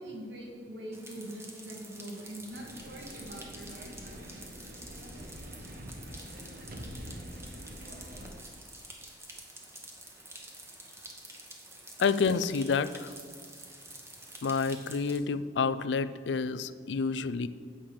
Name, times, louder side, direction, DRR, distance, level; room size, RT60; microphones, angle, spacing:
voice 1, 0.0-4.3, right 1 dB, 90° right, -1 dB, 2.2 m, -43 dB
sound 1, 0.9-15.2, right 2 dB, 15° right, 1.1 m, -48 dB
sound 2, 2.5-8.3, equal, 55° right, 1.0 m, -45 dB
voice 2, 12.0-13.1 14.4-17.5, left 5 dB, 85° left, 14 dB, 0.4 m, -29 dB
8.6 x 5.0 x 7.3 m, 2.1 s
head